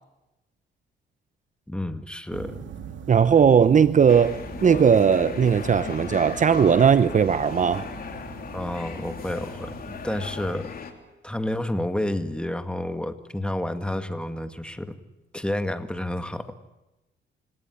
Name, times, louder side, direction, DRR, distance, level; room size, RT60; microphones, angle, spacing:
voice 1, 1.7-2.7 8.5-10.7 11.2-15.0 15.3-16.7, left 1 dB, 5° left, 8 dB, 2.0 m, -30 dB
sound 1, 2.3-10.5, right 7 dB, 70° right, 2.6 m, -42 dB
voice 2, 3.1-7.8, right 7 dB, 40° right, 14 dB, 0.8 m, -18 dB
sound 2, 4.1-10.9, left 6 dB, 50° left, 3.4 m, -37 dB
28.5 x 17.5 x 9.9 m, 1.0 s
cardioid pair, 90°, 20 cm